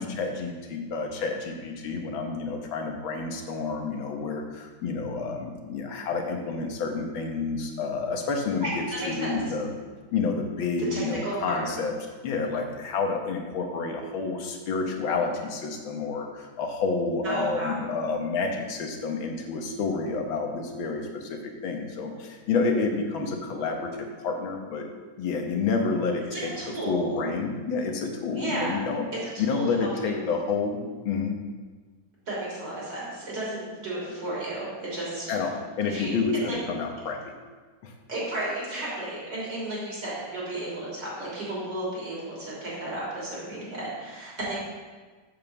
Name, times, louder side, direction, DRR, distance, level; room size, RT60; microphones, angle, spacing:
voice 1, 0.0-9.7 10.1-12.0 12.2-24.9 25.2-29.1 29.4-31.3 35.3-37.3 37.8-37.9, left 4 dB, 80° left, 3 dB, 1.9 m, -29 dB
voice 2, 8.6-9.4 10.8-11.7 17.2-17.8 26.3-27.2 28.4-28.8 29.2-30.3 32.3-35.3 35.9-36.1 36.5-36.6 38.1-44.6, right 1 dB, 55° right, -6 dB, 3.9 m, -33 dB
8.1 x 5.3 x 6.9 m, 1.4 s
omnidirectional pair, 2.2 m